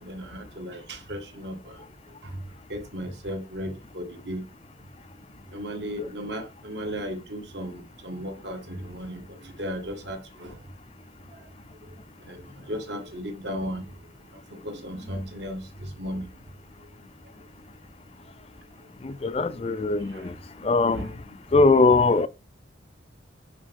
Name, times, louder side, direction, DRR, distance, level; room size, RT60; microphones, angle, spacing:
voice 1, 0.0-1.8 2.7-4.5 5.5-10.5 12.3-12.4 12.7-13.8 14.5-15.6 16.0-16.3 19.8-20.3 20.6-21.2, equal, 65° right, 1.8 m, -35 dB
voice 2, 19.2-20.0 20.7-21.0 21.5-22.3, left 3 dB, 30° left, 0.4 m, -19 dB
10.0 x 4.6 x 3.6 m
head